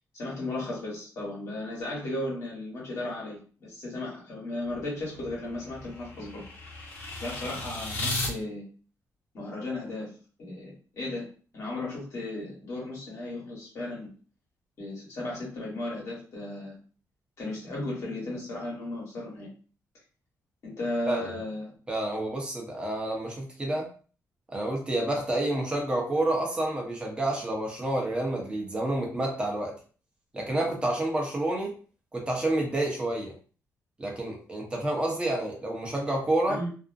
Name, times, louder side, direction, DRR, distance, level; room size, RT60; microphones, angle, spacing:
voice 1, 0.1-6.4 7.2-8.7 9.3-10.1 10.4-11.3 11.5-14.1 14.8-16.8 17.4-19.5 20.6-21.7 36.5-36.7, left 2 dB, 55° left, -5 dB, 1.2 m, -35 dB
sound 1, 4.7-8.3, left 1 dB, 35° left, 0.9 m, -35 dB
voice 2, 21.9-23.9 24.5-29.8 30.3-31.7 32.1-33.3 34.0-36.6, right 1 dB, 15° right, 0 dB, 0.7 m, -29 dB
2.5 x 2.0 x 2.5 m, 0.39 s
cardioid pair, 140°, 6 cm